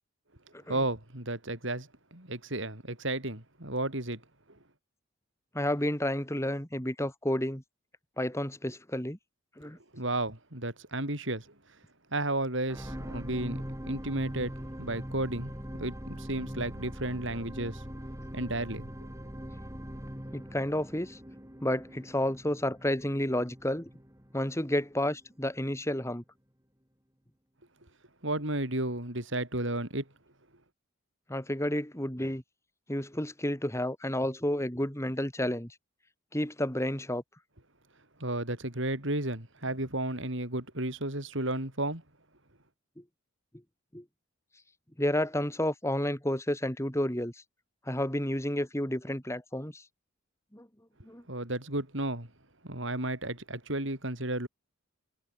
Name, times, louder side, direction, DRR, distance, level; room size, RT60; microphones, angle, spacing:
voice 1, 0.7-4.2 9.9-11.5 12.1-15.5 15.8-17.8 18.3-19.1 28.2-30.0 38.2-42.0 51.3-52.3 52.6-54.5, right 1 dB, 60° right, 5.6 m, -33 dB
voice 2, 5.5-7.6 8.2-9.2 9.6-9.8 20.3-21.2 21.6-23.9 24.3-26.2 31.3-32.4 32.9-35.7 36.3-37.2 43.0-43.1 43.9-44.0 45.0-47.4 47.9-49.8 50.5-50.7 51.0-51.2, left 1 dB, 15° left, 3.5 m, -31 dB
sound 1, 12.7-25.1 25.7-25.8, equal, 15° right, 4.4 m, -42 dB
head